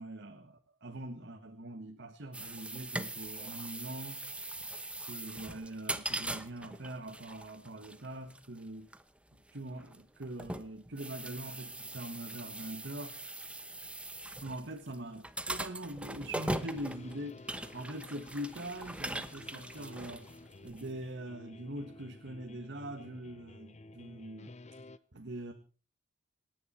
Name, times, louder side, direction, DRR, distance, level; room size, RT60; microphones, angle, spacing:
voice 1, 0.0-4.2 5.1-8.9 9.5-13.2 14.4-20.3 20.6-24.8 25.1-25.5, right 1 dB, 60° right, 1.7 m, -43 dB
sound 1, 2.3-20.9, right 1 dB, 5° right, 1.0 m, -41 dB
sound 2, 16.3-25.0, left 2 dB, 35° left, 0.9 m, -52 dB
27.0 x 10.0 x 4.5 m
head